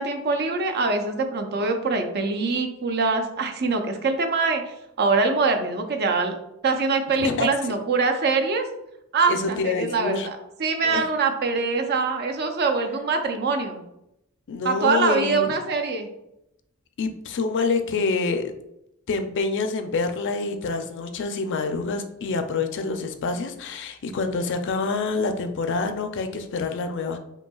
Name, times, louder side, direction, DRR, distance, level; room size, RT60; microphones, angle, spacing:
voice 1, 0.0-6.4 6.6-8.6 9.1-13.8 14.6-16.1, right 4 dB, 50° right, 5 dB, 0.5 m, -24 dB
voice 2, 9.3-10.3 10.8-11.1 14.5-15.6 17.0-18.5 19.1-27.2, left 4 dB, 60° left, 7 dB, 0.4 m, -26 dB
5.3 x 2.8 x 2.3 m, 0.83 s
head